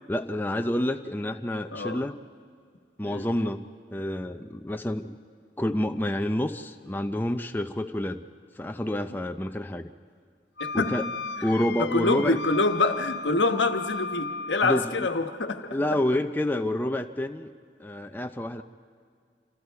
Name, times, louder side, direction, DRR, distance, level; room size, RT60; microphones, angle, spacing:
voice 1, 0.1-2.2 3.0-3.6 3.9-5.1 5.6-8.2 8.6-9.9 10.7-11.0 11.4-12.4 14.6-15.1 15.7-17.5 17.8-18.6, left 1 dB, 10° left, 6 dB, 0.5 m, -28 dB
voice 2, 1.7-2.0 3.0-3.3 9.1-9.2 10.6-11.0 11.8-16.0, left 3 dB, 90° left, 6 dB, 1.3 m, -26 dB
Wind instrument woodwind instrument, 10.6-14.9, left 5 dB, 70° left, 0.9 m, -36 dB
27.0 x 26.5 x 4.7 m, 2.1 s
head